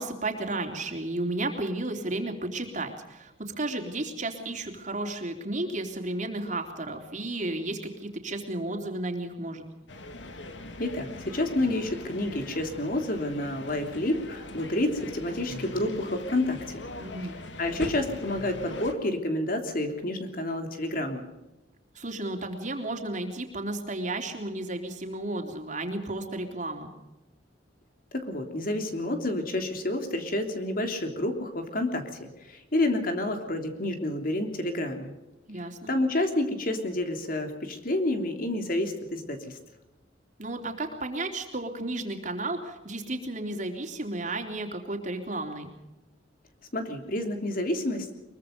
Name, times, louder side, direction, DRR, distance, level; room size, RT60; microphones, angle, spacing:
voice 1, 0.0-9.6 17.0-17.4 21.9-26.9 35.5-35.9 40.4-45.7, right 2 dB, 40° right, 3 dB, 3.4 m, -33 dB
sound 1, 9.9-18.9, left 2 dB, 80° left, 2.3 m, -41 dB
voice 2, 10.8-16.8 17.6-21.2 28.1-35.1 35.9-39.6 46.7-48.1, left 1 dB, 50° left, 5 dB, 3.2 m, -29 dB
23.5 x 23.0 x 5.3 m, 1.0 s
head